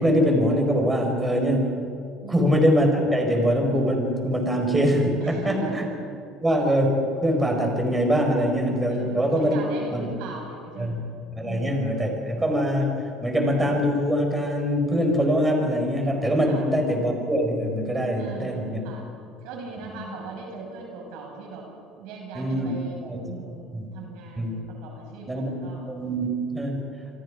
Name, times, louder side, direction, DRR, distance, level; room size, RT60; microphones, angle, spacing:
voice 1, 0.0-1.8 2.3-5.8 6.4-9.6 9.9-10.1 10.8-11.1 11.4-18.8 19.8-20.0 22.3-22.7 23.0-23.2 23.7-23.9 24.4-24.6 25.3-26.9, equal, 10° right, 2 dB, 5.2 m, -23 dB
voice 2, 2.2-2.5 5.2-5.9 8.9-11.1 11.4-11.9 16.5-16.7 18.1-19.1 19.4-21.6 21.9-23.0 23.2-26.4, right 4 dB, 75° right, 0 dB, 6.4 m, -39 dB
27.5 x 24.0 x 5.1 m, 2.4 s
cardioid pair, 120°, 0 cm